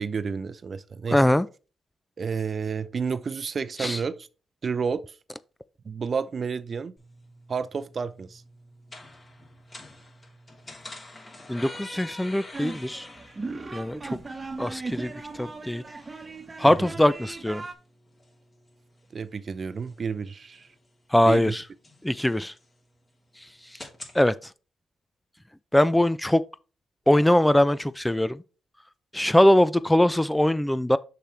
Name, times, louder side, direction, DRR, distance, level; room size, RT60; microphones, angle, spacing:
voice 1, 0.0-1.2 2.2-4.3 4.6-5.2 5.8-6.9 7.5-8.4 16.6-16.9 19.1-20.7 21.3-21.6, right 5 dB, 45° right, 0.5 m, -30 dB
voice 2, 1.1-1.5 3.8-4.0 11.5-13.1 13.7-14.2 14.6-15.1 15.4-15.8 16.6-17.6 21.1-21.6 22.0-22.5 24.1-24.3 25.7-26.4 27.1-28.4 29.1-31.0, left 1 dB, 5° left, 0.4 m, -21 dB
sound 1, 7.0-24.2, left 2 dB, 30° left, 3.1 m, -48 dB
sound 2, 12.5-17.7, right 3 dB, 30° right, 1.1 m, -38 dB
6.6 x 5.9 x 3.2 m
cardioid pair, 65°, 0 cm